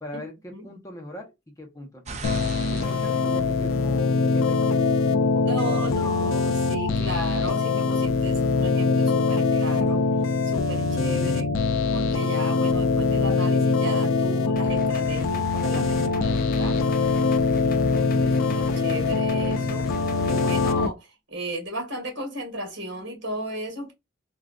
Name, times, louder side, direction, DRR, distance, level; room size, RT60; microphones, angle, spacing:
voice 1, 0.0-2.2 2.7-4.8 5.2-6.3, left 1 dB, 15° left, 0.9 m, -40 dB
sound 1, 2.0-4.5 9.8-11.8, right 3 dB, 35° right, 0.5 m, -42 dB
sound 2, 2.2-20.9, left 4 dB, 80° left, 0.4 m, -23 dB
voice 2, 5.4-10.1 10.4-11.6 11.9-17.2 17.6-23.9, right 1 dB, 60° right, 1.8 m, -35 dB
sound 3, 14.6-20.9, left 2 dB, 45° left, 0.7 m, -39 dB
3.5 x 2.5 x 2.4 m
head